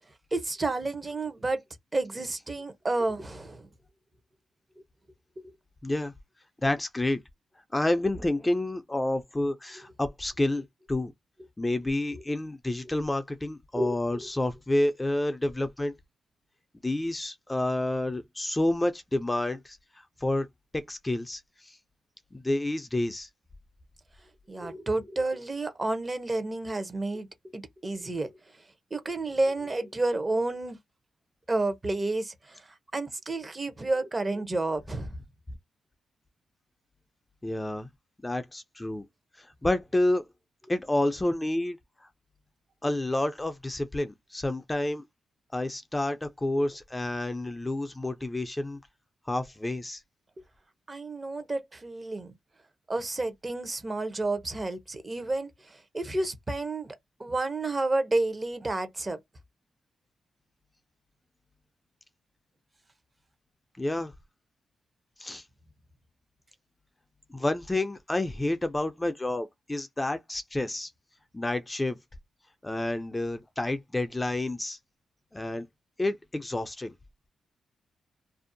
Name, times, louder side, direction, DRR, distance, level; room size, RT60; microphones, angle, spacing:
voice 1, 0.3-1.6 1.9-3.7 13.7-14.3 24.5-27.3 27.5-28.3 28.9-30.8 31.5-32.7 32.9-35.1 50.9-52.3 52.9-59.2, right 2 dB, 30° right, 0.7 m, -30 dB
voice 2, 5.8-6.1 6.6-7.2 7.7-11.1 11.6-15.9 16.8-20.5 20.7-21.8 22.3-23.3 37.4-37.9 38.2-39.1 39.4-40.2 40.7-41.8 42.8-45.0 45.5-48.8 49.3-50.0 63.8-64.1 65.2-65.4 67.3-70.9 71.3-72.0 72.6-74.8 75.3-75.7 76.0-76.9, left 1 dB, 20° left, 0.4 m, -29 dB
2.6 x 2.0 x 2.6 m
cardioid pair, 65°, 0 cm